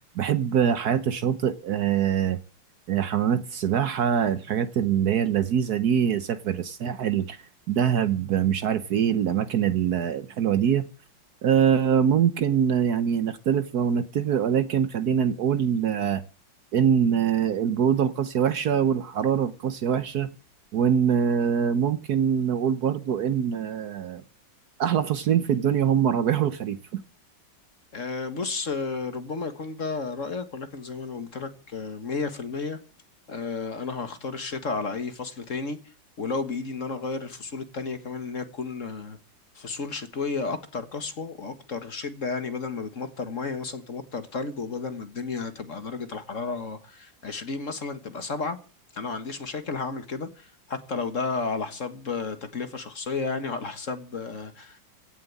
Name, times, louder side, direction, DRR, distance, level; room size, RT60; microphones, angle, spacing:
voice 1, 0.1-2.4 2.9-7.4 7.7-10.9 11.4-16.2 16.7-20.3 20.7-24.2 24.8-27.0, right 8 dB, 60° right, 1.2 m, -24 dB
voice 2, 27.9-32.8 33.3-35.8 36.2-39.2 39.6-48.6 48.9-54.8, left 4 dB, 45° left, 1.7 m, -32 dB
16.5 x 7.5 x 8.7 m
omnidirectional pair, 2.1 m